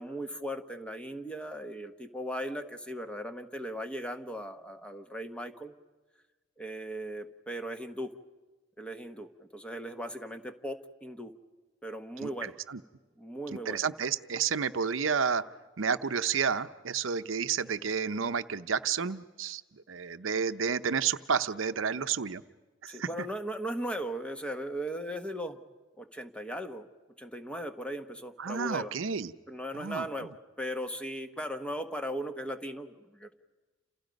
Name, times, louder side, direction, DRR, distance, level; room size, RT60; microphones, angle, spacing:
voice 1, 0.0-5.7 6.6-8.1 8.8-11.3 11.8-12.5 13.2-13.9 22.9-25.6 26.0-26.9 27.2-28.9 29.5-30.3 30.6-33.3, equal, 5° left, 7 dB, 1.2 m, -38 dB
voice 2, 12.2-12.8 13.5-15.4 15.8-22.4 22.8-23.1 28.4-29.3 29.7-30.1, right 6 dB, 85° right, 12 dB, 0.7 m, -31 dB
29.0 x 28.0 x 5.3 m, 1.2 s
head